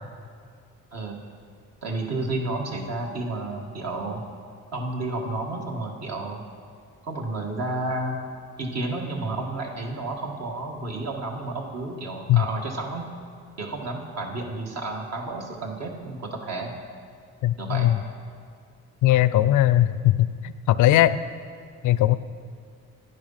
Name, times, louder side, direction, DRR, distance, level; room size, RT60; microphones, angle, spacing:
voice 1, 1.8-4.2 4.7-6.4 7.0-8.2 8.6-13.1 13.6-16.7 17.6-17.9, right 2 dB, 60° right, 1 dB, 1.9 m, -31 dB
voice 2, 17.4-18.0 19.0-21.2 21.8-22.1, left 13 dB, 80° left, 15 dB, 0.5 m, -19 dB
11.0 x 9.4 x 5.7 m, 2.2 s
cardioid pair, 90°, 30 cm